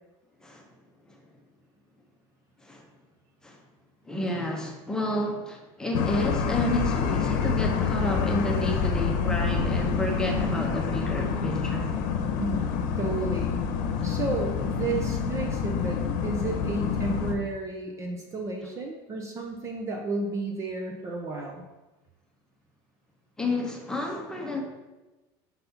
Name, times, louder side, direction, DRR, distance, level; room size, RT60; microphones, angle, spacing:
voice 1, 4.0-11.9 14.0-14.1 23.4-24.6, left 1 dB, 5° left, 0 dB, 1.0 m, -30 dB
sound 1, 5.9-17.4, left 6 dB, 70° left, 0.9 m, -27 dB
voice 2, 12.4-12.7 13.0-13.6 14.0-21.6, right 3 dB, 25° right, 2 dB, 0.7 m, -32 dB
5.6 x 4.1 x 5.7 m, 1.1 s
cardioid pair, 150°, 11 cm